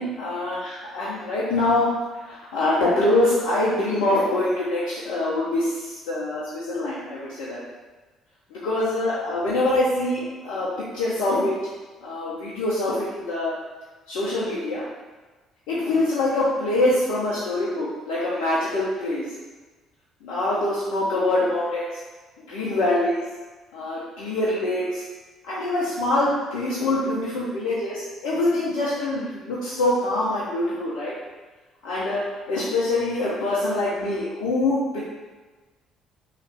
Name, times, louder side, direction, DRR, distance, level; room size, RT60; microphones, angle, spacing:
voice 1, 0.0-1.9 2.3-7.6 8.5-11.5 12.0-13.5 14.1-14.8 15.7-19.3 20.2-21.9 22.5-23.2 23.7-25.0 25.5-31.1 31.8-35.0, left 2 dB, 70° left, -8 dB, 0.5 m, -24 dB
2.9 x 2.4 x 3.4 m, 1.3 s
hypercardioid pair, 50°, 0 cm